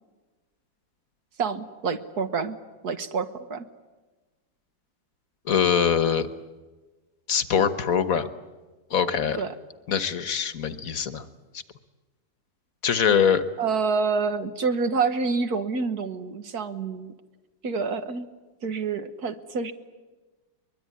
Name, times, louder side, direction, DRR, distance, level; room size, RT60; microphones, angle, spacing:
voice 1, 1.4-2.6 2.8-3.6 9.4-9.5 13.6-17.1 17.6-18.3 18.6-19.7, right 5 dB, 60° right, 9 dB, 1.7 m, -27 dB
voice 2, 5.4-6.3 7.3-8.3 8.9-9.4 9.9-11.3 12.8-13.4, left 7 dB, 50° left, 12 dB, 1.5 m, -23 dB
23.5 x 22.0 x 9.7 m, 1.2 s
omnidirectional pair, 2.0 m